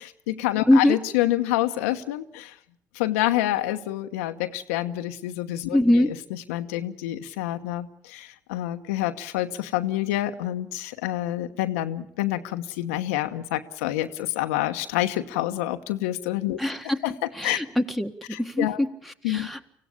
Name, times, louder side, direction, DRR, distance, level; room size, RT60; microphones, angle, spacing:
voice 1, 0.0-2.5 2.9-5.8 6.5-16.6 17.0-17.1 17.4-17.6 18.3-18.8 19.2-19.5, left 14 dB, 85° left, 7 dB, 1.0 m, -27 dB
voice 2, 0.7-1.0 5.7-6.1 16.6-17.0 17.3-18.1 18.4-19.7, left 1 dB, ahead, 8 dB, 1.7 m, -22 dB
25.5 x 16.5 x 8.7 m, 0.69 s
hypercardioid pair, 65°, 8 cm